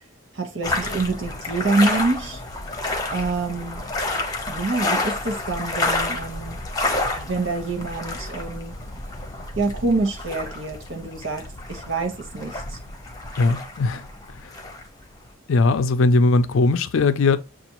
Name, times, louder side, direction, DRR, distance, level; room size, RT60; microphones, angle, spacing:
voice 1, 0.3-2.4 3.1-3.8 4.5-6.6 7.2-8.7 9.6-12.8, right 3 dB, 65° right, 1.0 m, -26 dB
sound 1, 0.6-15.3, left 2 dB, 20° left, 0.8 m, -29 dB
voice 2, 13.4-14.0 14.4-14.5 15.5-17.4, left 3 dB, 70° left, 0.4 m, -19 dB
6.8 x 2.4 x 2.9 m
head